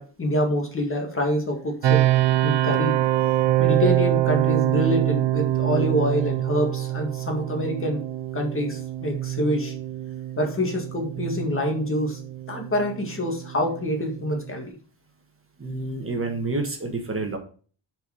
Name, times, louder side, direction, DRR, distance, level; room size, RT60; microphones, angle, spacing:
voice 1, 0.0-2.1 2.4-3.0 3.6-8.0 8.3-9.7 10.4-12.2 12.5-14.8, left 1 dB, 30° left, 3 dB, 1.9 m, -26 dB
sound 1, 1.8-14.7, right 14 dB, 70° right, 0.7 m, -25 dB
voice 2, 15.6-17.4, right 3 dB, 30° right, 3 dB, 1.5 m, -28 dB
9.2 x 4.7 x 5.0 m, 0.41 s
wide cardioid pair, 155°, 45 cm